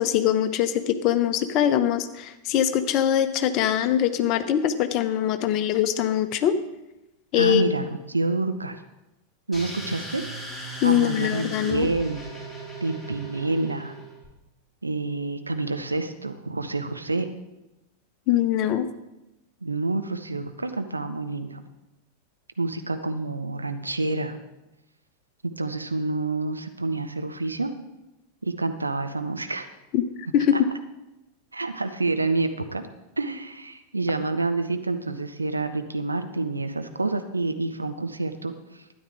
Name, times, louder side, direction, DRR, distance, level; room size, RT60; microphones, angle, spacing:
voice 1, 0.0-6.5 7.3-7.7 10.8-11.9 18.3-18.9 29.9-30.0 30.3-30.7, left 10 dB, 40° left, 11 dB, 0.8 m, -22 dB
voice 2, 7.3-8.8 9.5-10.2 10.8-12.3 12.8-14.0 14.8-17.3 19.6-21.6 22.6-24.4 25.4-27.7 28.4-29.7 30.5-30.6 31.5-32.9 33.2-38.8, right 3 dB, 80° right, 8 dB, 0.9 m, -28 dB
sound 1, 9.5-14.3, right 1 dB, 5° right, 3.8 m, -38 dB
12.5 x 9.7 x 4.8 m, 0.96 s
figure-of-eight pair, 90°, 0 cm